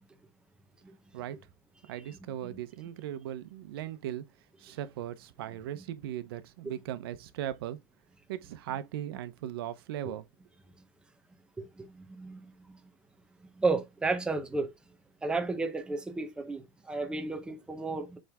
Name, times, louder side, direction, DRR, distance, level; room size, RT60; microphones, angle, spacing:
voice 1, 1.9-4.3 4.6-7.8 8.3-10.2, right 11 dB, 80° right, 1.0 m, -38 dB
voice 2, 11.6-12.8 13.5-14.7 15.2-18.2, right 3 dB, 5° right, 1.0 m, -33 dB
7.8 x 3.5 x 3.7 m
supercardioid pair, 155°, 12 cm